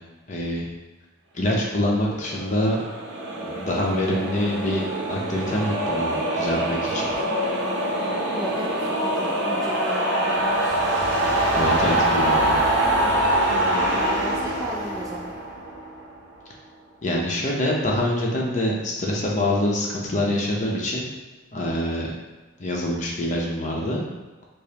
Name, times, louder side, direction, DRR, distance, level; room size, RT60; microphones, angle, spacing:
voice 1, 0.3-0.6 1.3-2.8 3.4-4.8 5.1-7.1 11.5-12.6 17.0-21.1 21.5-22.1 22.6-24.0, left 1 dB, 40° left, -2 dB, 0.6 m, -25 dB
sound 1, 1.9-16.2, right 1 dB, 70° right, 0.6 m, -24 dB
voice 2, 8.3-10.8 13.5-15.3, equal, 20° right, -3 dB, 0.3 m, -35 dB
5.0 x 2.0 x 2.8 m, 1.2 s
head